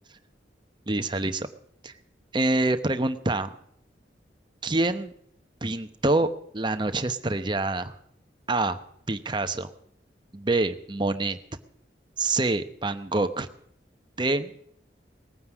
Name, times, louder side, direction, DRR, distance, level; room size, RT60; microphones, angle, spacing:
voice 1, 0.9-1.5 1.8-1.9 2.3-3.5 4.6-5.1 5.6-7.9 8.5-8.8 9.1-9.7 10.3-11.4 12.2-13.5 14.2-14.6, right 2 dB, 25° right, 9 dB, 0.9 m, -26 dB
19.5 x 9.4 x 6.1 m, 0.69 s
head